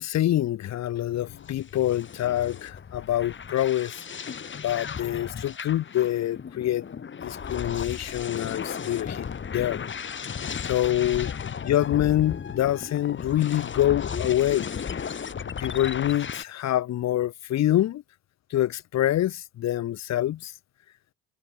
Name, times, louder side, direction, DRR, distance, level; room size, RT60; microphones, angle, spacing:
voice 1, 0.0-3.9 4.6-6.8 7.2-9.3 9.5-9.8 10.6-15.0 15.6-18.0 18.5-20.5, left 13 dB, 65° left, 2.9 m, -26 dB
sound 1, 1.2-16.4, left 7 dB, 40° left, 3.0 m, -35 dB
supercardioid pair, 65°, 29 cm